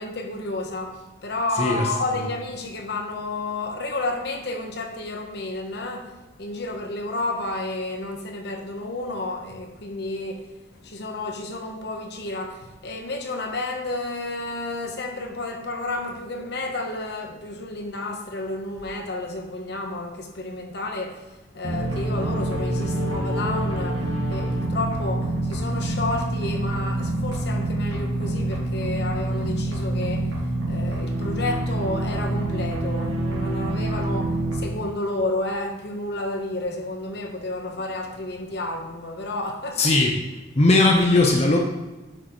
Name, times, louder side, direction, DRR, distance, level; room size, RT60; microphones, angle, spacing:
voice 1, 0.0-6.1 6.4-10.5 10.7-21.2 21.5-30.3 30.7-39.9, left 2 dB, 60° left, 1.0 m, -31 dB
voice 2, 1.6-1.9 39.8-40.2 40.5-41.6, left 2 dB, 35° left, 0.8 m, -18 dB
sound 1, 21.6-34.6, right 1 dB, 85° right, 1.8 m, -26 dB
8.9 x 6.6 x 3.1 m
head